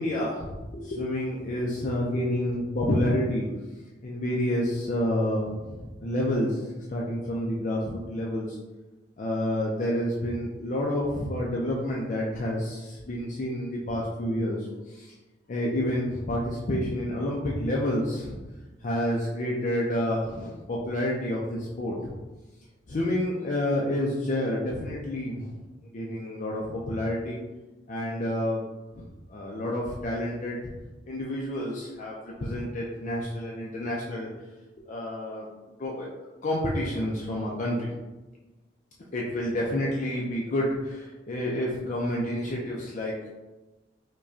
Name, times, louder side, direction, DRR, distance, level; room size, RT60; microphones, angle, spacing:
voice 1, 0.0-3.5 4.0-8.6 9.2-15.1 15.5-18.4 18.8-21.9 22.9-25.5 25.9-27.4 27.9-28.6 28.9-29.0 29.3-30.6 31.1-34.3 34.9-35.5 35.8-36.1 36.4-37.9 39.1-43.2, left 1 dB, 45° left, -4 dB, 0.5 m, -29 dB
4.8 x 2.2 x 2.6 m, 1.1 s
head